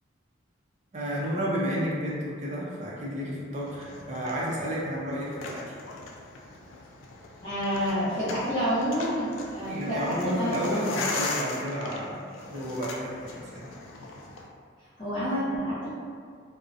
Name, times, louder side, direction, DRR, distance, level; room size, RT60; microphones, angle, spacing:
voice 1, 0.9-5.6 9.7-12.2 12.5-13.7, equal, 35° right, -5 dB, 0.4 m, -31 dB
sound 1, 3.6-14.5, left 3 dB, 85° left, 0.3 m, -38 dB
voice 2, 7.4-10.5 15.0-15.9, equal, 30° left, -15 dB, 0.6 m, -28 dB
2.4 x 2.0 x 2.5 m, 2.1 s
head